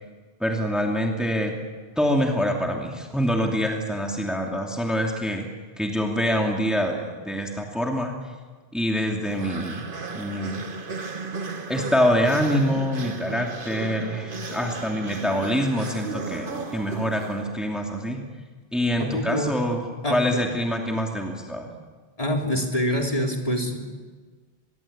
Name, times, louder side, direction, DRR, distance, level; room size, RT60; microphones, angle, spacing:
voice 1, 0.4-1.5 2.0-5.5 5.8-8.1 8.7-9.8 10.1-10.6 11.7-18.2 18.7-21.7, equal, ahead, 1 dB, 2.7 m, -25 dB
sound 1, 9.2-17.7, right 3 dB, 55° right, 1.6 m, -35 dB
voice 2, 19.0-19.6 20.0-20.2 22.2-23.8, equal, 35° left, 1 dB, 3.7 m, -25 dB
24.5 x 22.5 x 8.7 m, 1.4 s
omnidirectional pair, 1.0 m